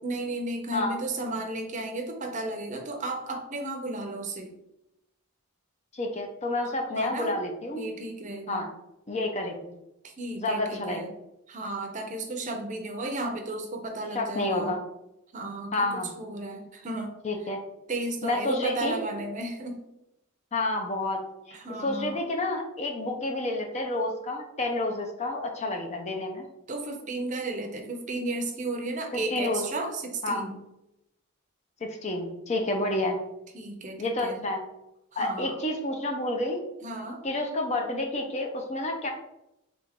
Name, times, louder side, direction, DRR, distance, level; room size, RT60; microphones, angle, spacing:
voice 1, 0.0-4.5 6.9-7.4 7.7-8.7 10.0-11.1 11.5-14.8 15.3-17.1 17.9-19.8 21.5-22.2 26.7-30.6 33.5-34.4 35.1-35.5 36.8-37.2, right 2 dB, 35° right, 4 dB, 0.6 m, -34 dB
voice 2, 5.9-7.8 8.5-8.7 9.1-9.6 10.4-11.0 14.1-14.8 15.7-16.1 17.2-17.6 18.2-19.0 20.5-21.6 21.8-26.4 29.1-29.7 30.2-30.4 31.8-33.2 34.0-34.6 35.2-36.6 37.2-39.1, left 2 dB, 35° left, 3 dB, 0.5 m, -29 dB
3.8 x 3.4 x 3.6 m, 0.87 s
head